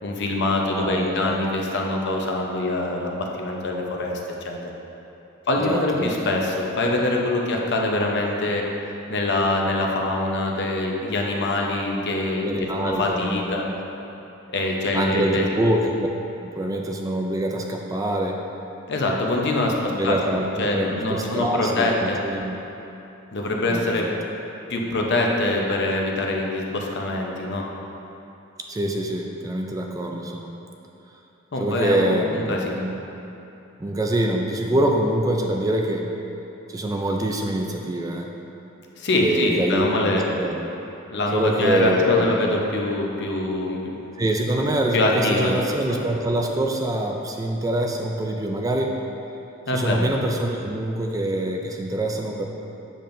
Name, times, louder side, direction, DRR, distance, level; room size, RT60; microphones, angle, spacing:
voice 1, 0.0-4.2 4.4-4.7 5.5-8.6 9.1-12.5 12.7-13.6 14.5-15.5 18.9-19.7 20.0-22.2 23.3-24.1 24.7-27.6 31.5-32.9 39.0-40.3 41.1-43.9 44.9-45.5 45.9-46.0 49.7-50.1, left 2 dB, 55° left, 0 dB, 0.8 m, -24 dB
voice 2, 0.7-1.4 5.7-6.1 12.4-13.6 14.9-16.1 16.4-18.4 19.9-22.6 23.7-24.1 28.7-30.5 31.6-33.0 33.8-36.1 36.7-38.3 39.2-40.6 41.3-42.5 44.2-48.9 49.7-52.5, right 1 dB, 15° right, 1 dB, 0.4 m, -25 dB
7.5 x 6.8 x 2.6 m, 2.9 s
head